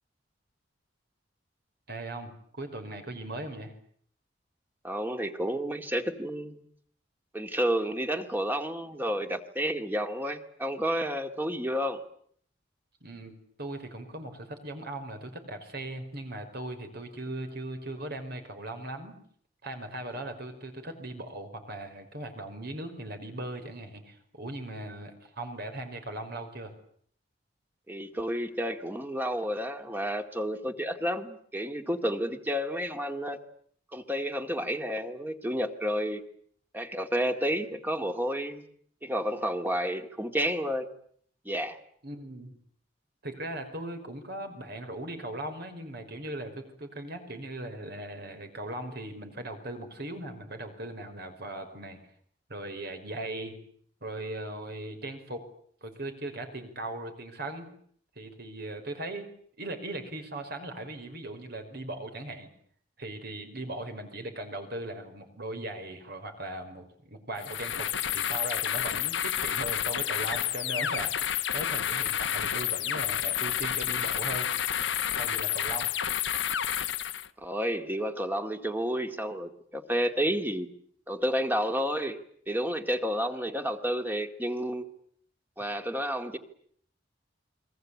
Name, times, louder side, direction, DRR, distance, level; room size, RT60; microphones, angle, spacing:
voice 1, 1.9-3.7 13.0-19.2 19.6-26.7 42.0-42.6 43.2-52.0 52.5-53.6 54.0-55.5 55.8-57.7 58.2-59.3 59.6-62.5 63.0-74.5 75.1-75.9, right 1 dB, 60° right, 7 dB, 5.4 m, -39 dB
voice 2, 4.8-6.6 7.3-12.0 27.9-33.4 33.9-36.2 36.7-38.6 39.0-40.9 41.5-41.8 77.4-80.7 81.1-82.2 82.5-84.9 85.6-86.4, equal, 10° right, 7 dB, 2.2 m, -30 dB
sound 1, 67.4-77.3, left 10 dB, 70° left, 1.1 m, -30 dB
29.0 x 23.0 x 8.6 m, 0.62 s
head